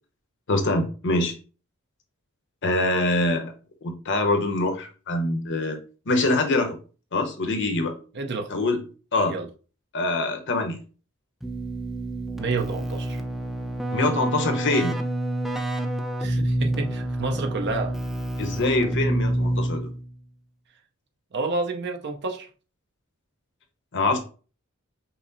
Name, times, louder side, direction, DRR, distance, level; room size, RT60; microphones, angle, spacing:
voice 1, 0.5-1.3 2.6-3.5 3.8-5.8 6.1-6.8 7.1-8.0 8.5-8.8 9.1-9.3 9.9-10.8 13.9-14.9 18.4-19.9 23.9-24.2, left 2 dB, 60° left, 0.9 m, -24 dB
voice 2, 8.1-8.5 9.3-9.5 12.4-13.2 16.2-17.9 21.3-22.5, right 3 dB, 55° right, 0.7 m, -29 dB
Keyboard (musical), 11.4-20.1, right 1 dB, ahead, 0.4 m, -28 dB
5.8 x 2.1 x 4.0 m
head